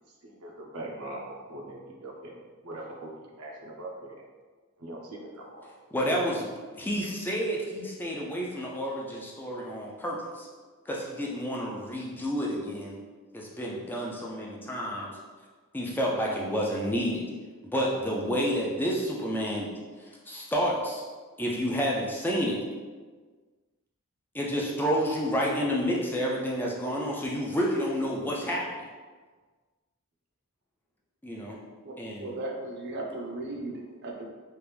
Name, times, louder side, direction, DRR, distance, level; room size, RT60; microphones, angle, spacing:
voice 1, 0.2-3.1 3.4-4.2 4.8-5.7, right 1 dB, 90° right, -1 dB, 0.7 m, -41 dB
voice 2, 5.9-6.5 6.8-10.5 10.9-13.0 13.3-15.1 15.7-17.2 17.7-19.7 20.3-21.0 21.4-22.6 24.3-28.6 31.2-31.6 32.0-32.3, equal, 10° left, -3 dB, 0.4 m, -29 dB
voice 3, 31.8-34.2, right 2 dB, 50° right, 0 dB, 0.6 m, -36 dB
3.3 x 2.5 x 3.3 m, 1.4 s
head